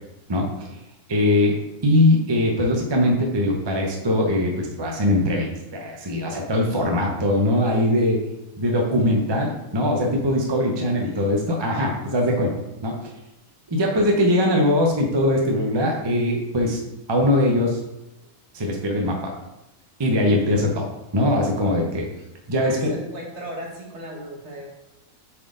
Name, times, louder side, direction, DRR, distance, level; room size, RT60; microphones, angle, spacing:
voice 1, 1.1-1.6 1.8-5.5 5.7-8.2 8.6-12.5 12.8-13.0 13.7-16.8 17.1-17.8 18.5-19.3 20.0-20.9 21.1-22.1 22.5-22.9, left 1 dB, 25° right, 0 dB, 0.5 m, -21 dB
voice 2, 22.6-24.7, equal, 45° right, -2 dB, 1.7 m, -36 dB
6.9 x 4.1 x 3.8 m, 0.94 s
omnidirectional pair, 1.6 m